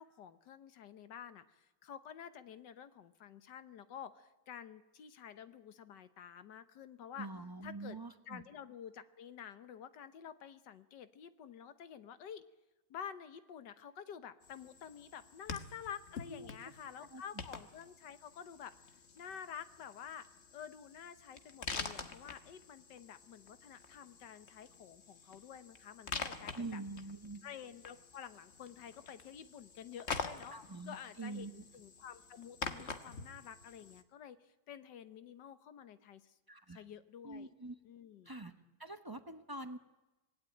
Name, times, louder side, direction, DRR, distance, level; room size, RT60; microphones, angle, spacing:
voice 1, 0.0-7.3 7.6-8.0 8.3-12.4 12.9-20.3 20.5-26.8 27.4-30.5 30.9-36.3 36.7-37.5 37.8-38.3, left 8 dB, 80° left, 12 dB, 1.7 m, -50 dB
voice 2, 7.2-8.4 16.3-16.5 17.0-17.2 26.5-27.4 30.5-31.5 36.5-36.8 37.2-37.7 38.2-38.5 38.8-39.8, right 2 dB, 20° right, 9 dB, 0.7 m, -45 dB
sound 1, 14.4-34.0, left 5 dB, 40° left, 1.5 m, -47 dB
25.5 x 18.5 x 9.1 m, 1.1 s
omnidirectional pair, 1.8 m